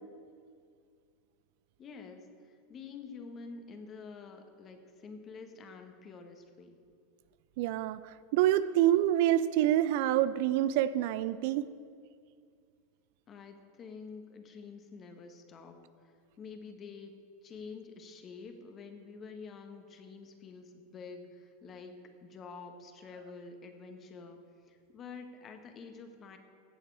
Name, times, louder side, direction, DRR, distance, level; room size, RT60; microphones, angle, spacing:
voice 1, 1.8-6.8 13.3-17.1 17.4-21.9 22.2-26.4, left 4 dB, 35° left, 6 dB, 1.4 m, -48 dB
voice 2, 7.6-11.7, right 12 dB, 60° right, 15 dB, 0.4 m, -27 dB
15.5 x 7.4 x 4.8 m, 2.2 s
hypercardioid pair, 95°, 0 cm